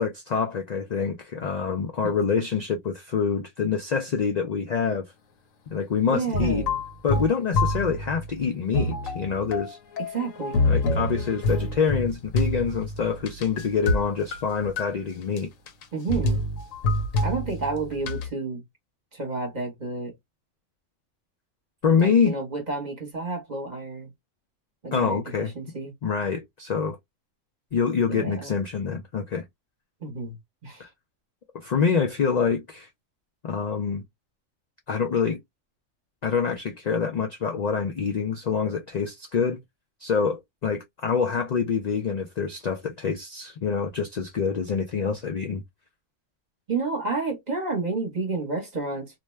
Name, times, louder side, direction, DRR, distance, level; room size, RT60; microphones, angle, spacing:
voice 1, 0.0-5.1 5.7-6.6 7.0-9.8 10.7-15.5 21.8-22.3 24.9-25.5 26.0-27.0 27.7-29.4 31.5-32.9 33.4-34.0 34.9-35.4 36.2-39.6 40.0-45.6, left 6 dB, 70° left, 0.4 m, -26 dB
voice 2, 6.1-6.8 10.1-10.7 15.9-16.5 17.2-18.6 19.1-20.2 22.0-24.1 24.8-25.9 28.1-28.6 30.0-30.4 30.6-30.9 46.7-49.2, right 4 dB, 35° right, 1.1 m, -30 dB
sound 1, 6.3-8.4 8.7-14.0 14.3-14.9 15.4-15.5 15.7-15.8 16.1-18.3, left 2 dB, 90° left, 1.0 m, -27 dB
2.5 x 2.2 x 3.1 m
omnidirectional pair, 1.3 m